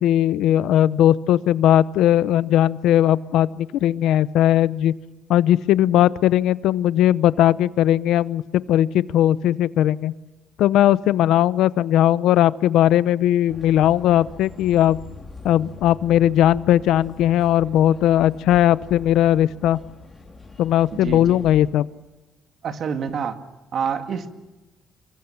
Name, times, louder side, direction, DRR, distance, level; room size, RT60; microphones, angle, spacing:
voice 1, 0.0-4.9 5.3-10.1 10.6-15.0 15.4-19.8 20.6-21.9, left 12 dB, 80° left, 17 dB, 0.8 m, -18 dB
sound 1, 13.5-21.7, left 3 dB, 10° left, 4.1 m, -43 dB
voice 2, 20.9-21.4 22.6-23.4 23.7-24.3, right 7 dB, 45° right, 8 dB, 2.1 m, -27 dB
27.5 x 23.5 x 7.2 m, 1.1 s
cardioid pair, 160°, 0 cm